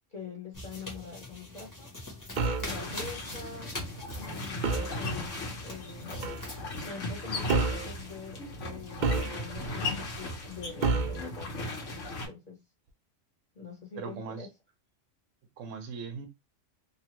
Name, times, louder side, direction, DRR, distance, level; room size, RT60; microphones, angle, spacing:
voice 1, 0.1-1.9 2.5-3.7 4.2-6.4 6.8-9.9 10.2-12.6 13.5-14.5, left 4 dB, 40° left, 1.0 m, -45 dB
sound 1, 0.5-6.6, left 1 dB, 15° left, 0.8 m, -43 dB
sound 2, 2.4-2.7 4.6-5.0 6.2-6.4 7.5-7.9 9.0-9.7 10.8-11.2, right 4 dB, 60° right, 0.5 m, -28 dB
sound 3, 2.6-12.3, left 2 dB, 75° left, 1.3 m, -37 dB
voice 2, 14.0-14.5 15.6-16.3, right 5 dB, 80° right, 1.1 m, -39 dB
3.1 x 2.2 x 2.9 m
omnidirectional pair, 1.3 m